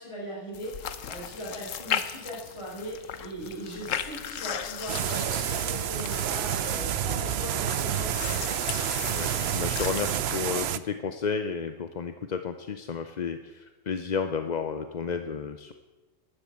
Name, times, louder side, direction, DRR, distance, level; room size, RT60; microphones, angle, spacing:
voice 1, 0.0-8.6, equal, 20° left, -5 dB, 5.5 m, -39 dB
sound 1, 0.5-10.4, left 8 dB, 85° left, 1.2 m, -37 dB
sound 2, 4.9-10.8, right 10 dB, 65° right, 0.8 m, -29 dB
voice 2, 9.1-15.7, left 6 dB, 45° left, 8 dB, 0.7 m, -32 dB
12.5 x 10.0 x 8.6 m, 1.2 s
omnidirectional pair, 1.3 m